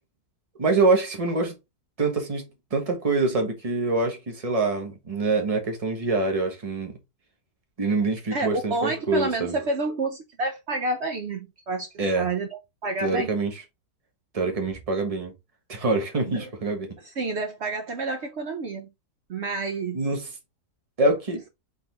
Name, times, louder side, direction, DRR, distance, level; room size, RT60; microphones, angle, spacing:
voice 1, 0.6-1.5 2.0-7.0 7.8-9.6 12.0-12.3 13.0-13.5 14.3-15.3 15.7-16.9 19.9-20.3 21.0-21.4, right 3 dB, 25° right, 1.2 m, -25 dB
voice 2, 8.3-13.3 16.3-16.5 17.2-18.9 19.3-20.0, right 2 dB, 55° right, 0.8 m, -29 dB
4.1 x 3.3 x 3.9 m
omnidirectional pair, 1.7 m